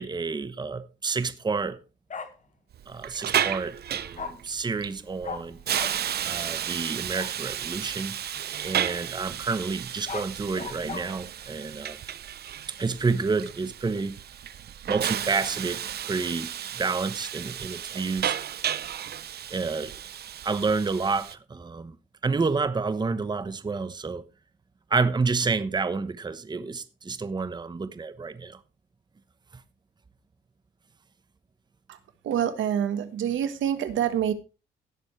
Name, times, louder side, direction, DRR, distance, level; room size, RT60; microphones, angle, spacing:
voice 1, 0.0-1.8 2.9-5.6 6.2-8.1 8.6-12.0 12.8-14.1 14.9-18.4 19.5-19.9 20.4-22.0 22.2-24.2 24.9-28.6, right 4 dB, 20° right, 0.9 m, -29 dB
Bark, 2.1-2.3 4.2-4.3 5.2-5.4 5.7-5.9 7.1-7.3 9.8-11.0, left 5 dB, 40° left, 1.7 m, -36 dB
Hiss, 2.7-21.4, right 10 dB, 55° right, 0.7 m, -33 dB
voice 2, 32.2-34.3, right 9 dB, 75° right, 1.4 m, -26 dB
17.0 x 7.0 x 3.2 m
cardioid pair, 90°, 20 cm